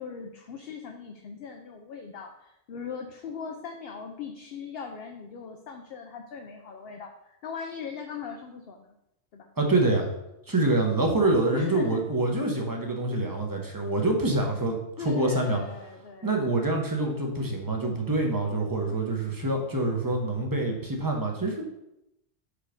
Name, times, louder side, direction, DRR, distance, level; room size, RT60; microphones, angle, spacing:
voice 1, 0.0-9.0 9.3-9.5 11.5-12.0 15.0-16.4, left 6 dB, 60° left, 3 dB, 0.7 m, -39 dB
voice 2, 9.6-10.0 10.5-15.6 16.2-21.6, right 2 dB, 20° right, 2 dB, 0.9 m, -26 dB
5.0 x 4.5 x 5.0 m, 0.85 s
omnidirectional pair, 1.3 m